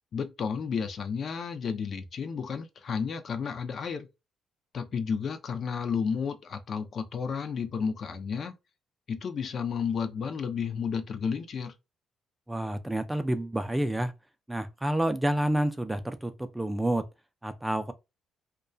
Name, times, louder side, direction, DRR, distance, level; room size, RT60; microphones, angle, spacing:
voice 1, 0.1-4.1 4.7-8.5 9.1-11.7, left 6 dB, 55° left, 0.4 m, -32 dB
voice 2, 12.5-14.1 14.5-17.0 17.4-17.9, right 1 dB, 10° right, 0.4 m, -29 dB
2.2 x 2.2 x 2.5 m
cardioid pair, 90°, 0 cm